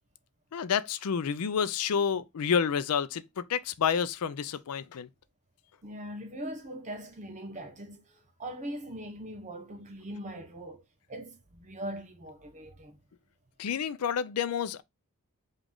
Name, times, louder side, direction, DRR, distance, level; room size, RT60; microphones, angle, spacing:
voice 1, 0.5-5.1 13.6-14.8, left 7 dB, 75° left, 0.4 m, -29 dB
voice 2, 5.8-10.8 11.1-13.0, right 1 dB, 35° right, 1.0 m, -41 dB
5.1 x 2.4 x 3.6 m
head